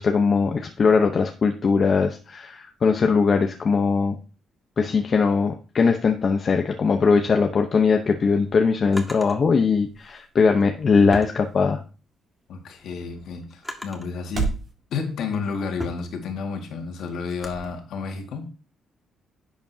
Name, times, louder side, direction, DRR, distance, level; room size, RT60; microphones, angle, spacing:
voice 1, 0.0-4.2 4.8-11.8, left 5 dB, 45° left, 0.9 m, -20 dB
Drawer open or close, 7.9-9.4 10.4-12.0 12.5-14.2 14.8-17.7, equal, 10° left, 1.9 m, -40 dB
sound 1, 8.4-14.7, right 5 dB, 45° right, 3.3 m, -37 dB
voice 2, 12.5-14.6 14.9-18.5, left 5 dB, 75° left, 1.9 m, -31 dB
10.5 x 7.1 x 2.8 m
cardioid pair, 90°, 0 cm